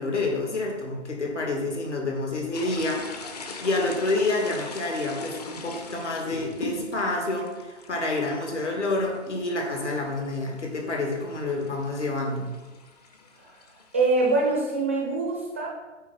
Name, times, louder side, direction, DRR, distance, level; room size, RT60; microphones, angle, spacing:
voice 1, 0.0-3.1 3.6-12.5, left 2 dB, 70° left, 1 dB, 2.0 m, -28 dB
sound 1, 2.5-14.6, left 3 dB, 30° left, 0.7 m, -41 dB
voice 2, 13.9-15.7, right 3 dB, 10° right, -2 dB, 0.5 m, -24 dB
9.1 x 3.5 x 5.5 m, 1.2 s
figure-of-eight pair, 135°, 37 cm